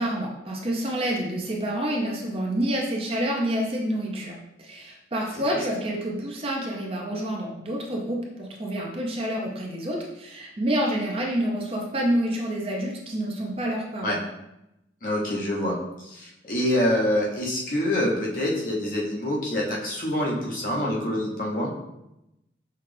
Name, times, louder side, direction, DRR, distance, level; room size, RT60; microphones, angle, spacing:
voice 1, 0.0-14.1, right 1 dB, 30° right, -1 dB, 0.6 m, -28 dB
voice 2, 15.0-21.7, left 1 dB, 50° left, -3 dB, 0.9 m, -26 dB
5.8 x 2.4 x 3.3 m, 0.89 s
head